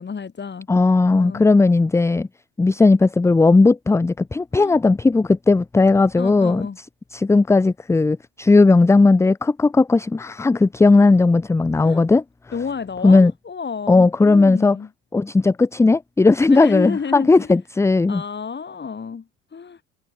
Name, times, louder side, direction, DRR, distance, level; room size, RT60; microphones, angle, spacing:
voice 1, 0.0-0.7 1.1-1.4 4.5-4.8 6.1-6.8 11.8-12.0 12.5-14.9 16.5-17.5 18.1-19.8, left 6 dB, 30° left, 6.7 m, -31 dB
voice 2, 0.7-2.3 2.6-6.7 7.1-12.2 13.0-13.3 13.9-14.8 15.1-18.2, left 3 dB, 10° left, 0.5 m, -16 dB
hypercardioid pair, 70°, 34 cm